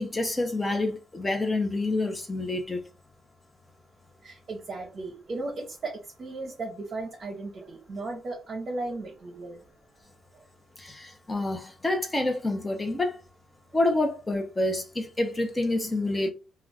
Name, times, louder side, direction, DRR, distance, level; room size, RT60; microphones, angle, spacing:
voice 1, 0.0-2.8 10.8-13.2 13.7-16.3, left 2 dB, 20° left, 0.8 m, -28 dB
voice 2, 4.2-9.6 10.3-10.4, right 2 dB, 45° right, 0.8 m, -36 dB
2.4 x 2.3 x 3.2 m
cardioid pair, 90°, 0 cm